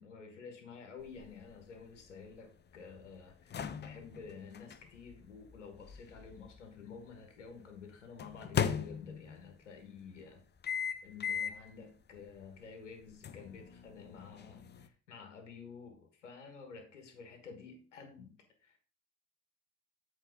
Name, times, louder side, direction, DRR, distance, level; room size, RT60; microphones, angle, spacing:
voice 1, 0.0-10.4 10.7-18.4 18.6-18.8, left 5 dB, 85° left, 5 dB, 1.5 m, -51 dB
sound 1, 1.0-7.1 8.2-9.5 10.6-11.7 12.2-12.3 13.2-14.9, left 7 dB, 30° left, 0.7 m, -39 dB
7.7 x 4.2 x 5.2 m, 0.42 s
hypercardioid pair, 65°, 35 cm